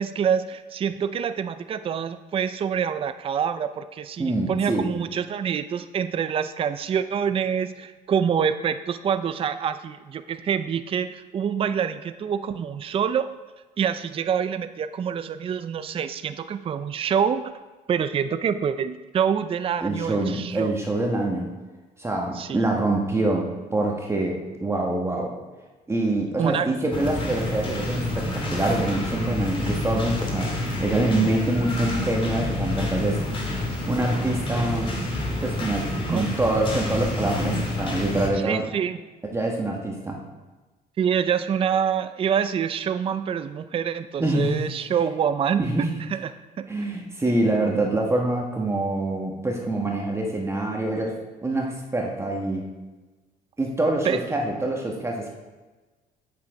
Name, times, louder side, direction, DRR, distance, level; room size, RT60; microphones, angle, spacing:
voice 1, 0.0-13.3 13.8-17.5 17.9-20.7 22.3-22.6 26.4-26.7 36.1-36.3 38.4-39.0 41.0-46.7 54.0-54.2, right 7 dB, 35° right, 11 dB, 0.4 m, -26 dB
voice 2, 4.2-4.9 19.8-21.5 22.0-25.3 25.9-30.5 30.8-33.2 33.9-34.9 35.4-38.6 39.2-40.2 44.2-44.7 45.6-45.9 46.7-51.1 51.4-52.6 53.6-55.3, right 2 dB, 15° right, 0 dB, 1.2 m, -25 dB
sound 1, 26.9-38.3, left 1 dB, 30° left, 2.2 m, -28 dB
7.9 x 6.8 x 4.7 m, 1.2 s
cardioid pair, 110°, 17 cm